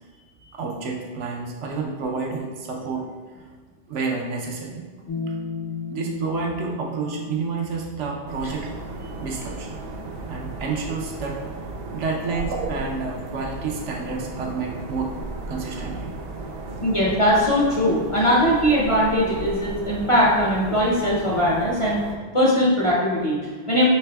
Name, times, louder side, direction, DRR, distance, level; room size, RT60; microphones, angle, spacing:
voice 1, 0.5-3.2 3.9-4.9 5.9-8.7 9.2-9.8 10.3-11.4 11.9-15.1 15.5-16.1 16.7-16.8, right 4 dB, 80° right, 0 dB, 1.0 m, -29 dB
sound 1, 5.1-8.9, left 2 dB, 75° left, 1.1 m, -34 dB
sound 2, 8.3-22.2, right 2 dB, 60° right, 0.7 m, -35 dB
voice 2, 16.8-22.0 22.3-23.9, equal, 40° left, -5 dB, 0.5 m, -20 dB
5.6 x 3.3 x 2.3 m, 1.5 s
omnidirectional pair, 1.2 m